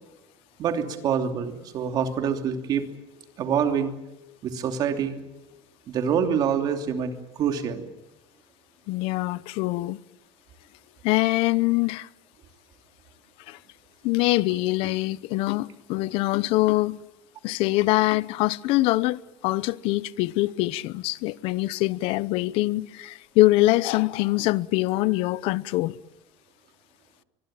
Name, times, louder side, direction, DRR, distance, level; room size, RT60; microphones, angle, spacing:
voice 1, 0.6-2.9 3.4-3.9 4.4-5.2 5.9-7.8, right 7 dB, 45° right, 2.8 m, -26 dB
voice 2, 8.9-10.0 11.0-12.1 13.5-13.6 14.0-17.0 17.4-26.0, left 19 dB, 75° left, 0.8 m, -24 dB
24.5 x 21.5 x 8.9 m
cardioid pair, 170°, 10 cm